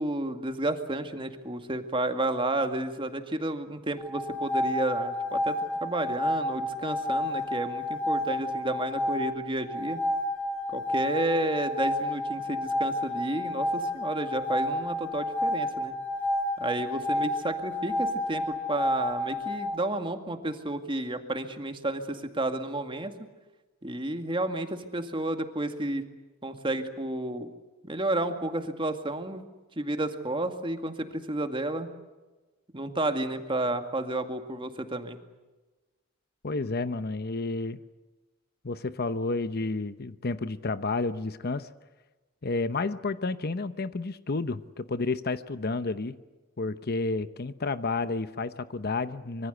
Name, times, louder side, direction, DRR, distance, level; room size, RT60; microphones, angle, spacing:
voice 1, 0.0-10.0 10.7-15.9 16.6-23.1 23.8-26.1 26.4-27.5 27.8-29.4 29.8-31.9 32.7-35.2, right 2 dB, 25° right, 6 dB, 2.1 m, -31 dB
sound 1, 4.0-19.8, left 1 dB, 5° left, 5.1 m, -30 dB
voice 2, 36.4-37.8 38.6-41.7 42.4-46.2 46.6-49.5, left 3 dB, 50° left, 12 dB, 0.9 m, -31 dB
25.5 x 24.0 x 8.1 m, 1.2 s
head